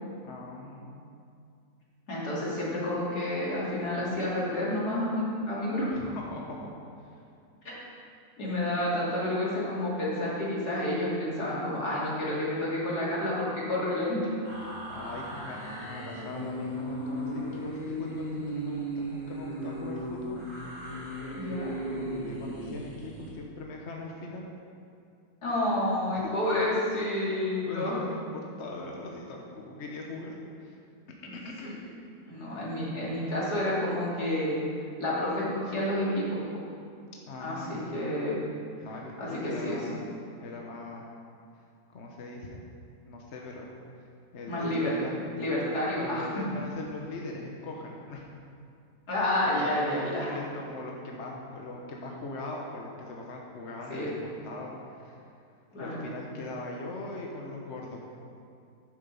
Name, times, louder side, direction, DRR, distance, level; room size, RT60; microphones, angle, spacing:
voice 1, 0.2-1.0 5.9-6.6 7.0-7.2 14.9-20.4 21.9-24.4 26.1-26.3 27.2-27.3 27.6-30.8 31.3-31.8 37.3-37.9 38.8-40.0 40.4-41.1 41.9-42.6 43.0-43.7 44.3-45.2 46.0-48.3 49.4-55.2 55.8-58.0, left 2 dB, 50° left, -1 dB, 1.2 m, -40 dB
voice 2, 2.1-6.1 7.6-7.7 8.4-14.2 21.4-21.7 25.4-28.0 32.3-34.6 35.0-36.6 37.4-38.4 39.2-39.8 44.5-44.9 45.3-46.3 49.1-50.3 53.9-54.1 55.7-55.9, left 1 dB, 75° left, -7 dB, 3.3 m, -29 dB
sound 1, 14.4-23.3, right 1 dB, 15° left, 2.9 m, -36 dB
10.5 x 7.3 x 5.4 m, 2.4 s
omnidirectional pair, 1.7 m